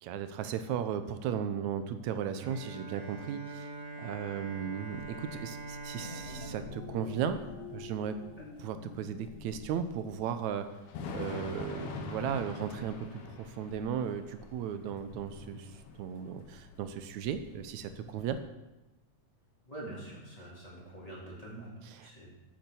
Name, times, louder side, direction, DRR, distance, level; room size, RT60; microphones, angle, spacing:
voice 1, 0.0-3.7 4.0-7.4 7.7-8.2 8.6-10.7 11.1-15.7 16.0-18.4 21.9-22.1, right 8 dB, 75° right, 10 dB, 2.0 m, -36 dB
Bowed string instrument, 2.4-8.3, right 2 dB, 50° right, 3.3 m, -44 dB
Thunder / Rain, 4.9-18.4, left 4 dB, 70° left, 2.3 m, -46 dB
sound 1, 5.8-10.4, left 4 dB, 85° left, 0.6 m, -48 dB
voice 2, 19.6-21.7 22.0-22.3, right 1 dB, 10° left, -6 dB, 3.4 m, -45 dB
8.8 x 8.4 x 7.0 m, 1.0 s
omnidirectional pair, 3.5 m